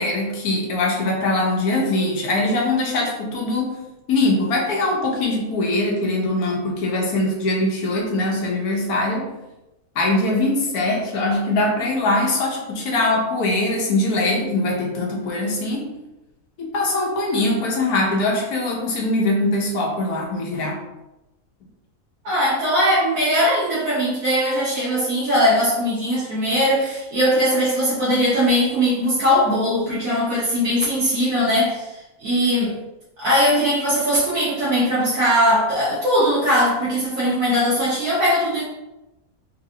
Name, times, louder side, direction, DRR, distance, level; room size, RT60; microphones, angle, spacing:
voice 1, 0.0-3.8 4.1-9.3 9.9-15.9 16.6-20.8, left 2 dB, 80° left, -1 dB, 1.4 m, -22 dB
voice 2, 22.2-32.7 33.2-38.6, equal, 65° right, -9 dB, 1.4 m, -20 dB
4.1 x 3.3 x 2.7 m, 0.98 s
omnidirectional pair, 1.6 m